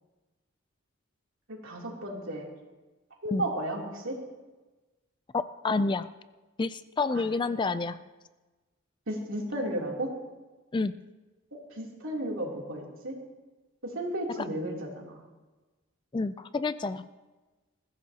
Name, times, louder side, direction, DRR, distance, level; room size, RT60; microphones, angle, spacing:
voice 1, 1.5-2.5 3.2-4.1 7.4-7.5 9.1-10.1 11.7-13.1 13.8-15.2, right 1 dB, 75° right, -2 dB, 3.2 m, -34 dB
voice 2, 5.3-6.1 6.6-8.0 10.7-10.9 14.4-14.5 16.1-17.0, left 3 dB, 25° left, 13 dB, 0.4 m, -29 dB
20.5 x 15.0 x 2.9 m, 1.2 s
head